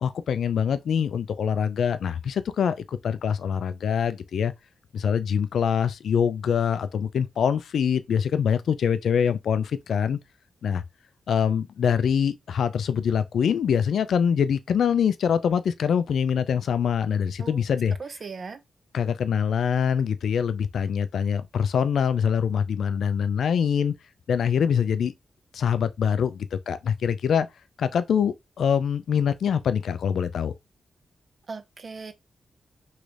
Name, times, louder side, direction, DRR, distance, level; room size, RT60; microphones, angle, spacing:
voice 1, 0.0-4.5 4.9-10.2 10.6-10.8 11.3-17.9 18.9-23.9 24.3-25.1 25.5-27.5 27.8-30.5, left 7 dB, 80° left, 0.3 m, -24 dB
voice 2, 18.0-18.6 31.5-32.1, right 4 dB, 40° right, 0.4 m, -38 dB
3.2 x 3.1 x 2.4 m
wide cardioid pair, 160°, 0 cm